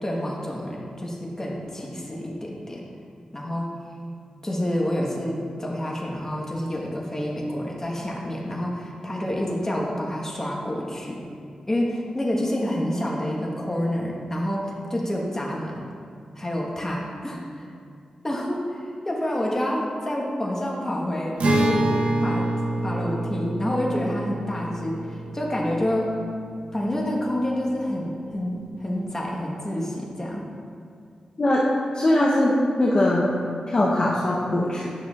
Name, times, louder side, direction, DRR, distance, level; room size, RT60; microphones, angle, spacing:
voice 1, 0.0-2.8 3.3-3.7 4.4-11.2 11.7-15.8 16.3-17.7 18.2-21.9 22.2-22.5 22.8-26.1 26.7-30.4, left 1 dB, 20° left, -3 dB, 1.2 m, -28 dB
Acoustic guitar, 21.4-26.9, right 1 dB, 75° right, 0.8 m, -27 dB
voice 2, 31.9-33.3 33.7-34.9, left 1 dB, 40° left, -5 dB, 0.7 m, -21 dB
9.9 x 6.1 x 2.4 m, 2.3 s
wide cardioid pair, 90°, 2 cm